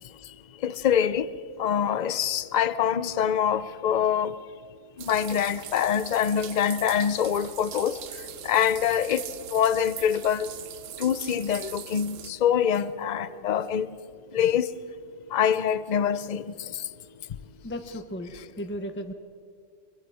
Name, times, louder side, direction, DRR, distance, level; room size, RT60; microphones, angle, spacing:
voice 1, 0.6-1.3 1.6-4.4 5.0-8.0 8.4-9.2 9.5-10.5 11.0-13.9 14.3-14.7 15.3-16.5, left 9 dB, 45° left, 0.6 m, -25 dB
sound 1, 5.0-12.3, right 10 dB, 85° right, 1.1 m, -41 dB
voice 2, 17.6-19.1, equal, 10° left, 1.0 m, -35 dB
24.0 x 22.5 x 4.9 m
omnidirectional pair, 1.3 m